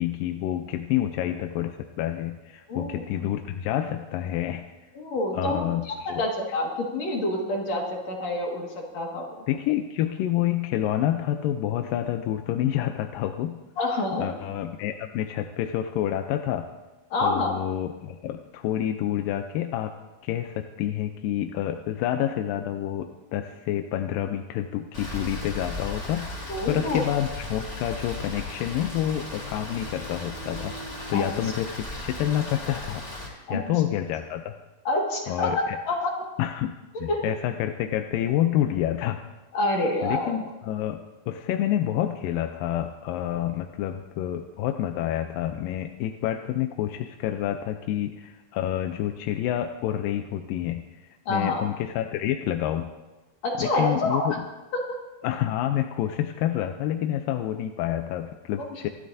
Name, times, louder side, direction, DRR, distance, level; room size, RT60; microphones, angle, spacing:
voice 1, 0.0-4.7 5.3-6.2 9.5-13.6 14.2-16.7 17.2-19.9 20.2-34.5 35.3-35.8 36.4-39.2 40.0-41.0 41.3-50.8 51.3-52.9 53.6-54.5 55.2-58.9, left 11 dB, 80° left, 6 dB, 2.2 m, -28 dB
voice 2, 2.7-3.0 4.9-5.6 5.9-8.7 8.9-9.3 13.8-14.2 17.1-17.5 26.5-27.0 31.1-31.3 33.5-33.6 34.8-35.5 35.9-36.1 37.1-37.2 39.5-40.3 51.3-51.6 53.4-54.3, left 2 dB, 50° left, -1 dB, 2.8 m, -27 dB
Rain, 24.9-33.3, left 2 dB, 20° left, 3.4 m, -36 dB
25.5 x 12.5 x 2.7 m, 1.1 s
omnidirectional pair, 4.3 m